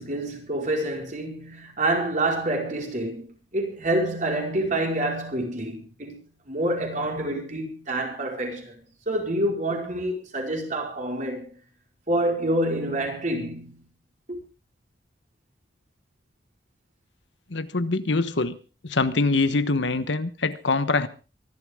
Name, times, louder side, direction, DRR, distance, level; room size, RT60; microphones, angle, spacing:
voice 1, 0.0-6.2 6.4-8.7 9.1-11.6 12.1-13.8 14.3-14.4, right 1 dB, 45° right, 5.0 m, -27 dB
voice 2, 17.5-18.6 18.8-21.1, left 3 dB, 75° left, 1.2 m, -24 dB
25.0 x 12.0 x 3.7 m
head